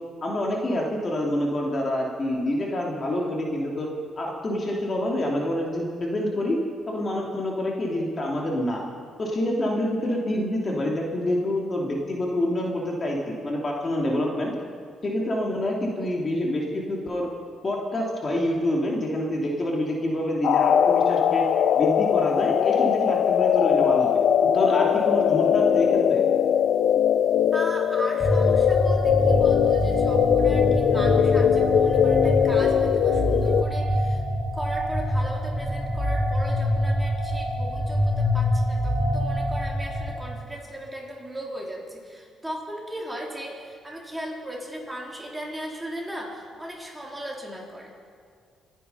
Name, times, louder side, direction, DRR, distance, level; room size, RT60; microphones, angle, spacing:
voice 1, 0.2-3.9 4.2-6.6 6.9-8.8 9.2-14.5 15.0-17.3 17.6-21.4 21.7-26.2, left 1 dB, 35° left, -1 dB, 2.7 m, -27 dB
sound 1, 20.4-33.6, left 9 dB, 70° left, 0.5 m, -21 dB
voice 2, 27.5-34.2 34.5-47.9, right 1 dB, 10° right, -2 dB, 3.8 m, -37 dB
sound 2, 28.2-40.1, equal, 10° left, 4.3 m, -25 dB
25.5 x 10.0 x 5.6 m, 2.2 s
cardioid pair, 90°, 0 cm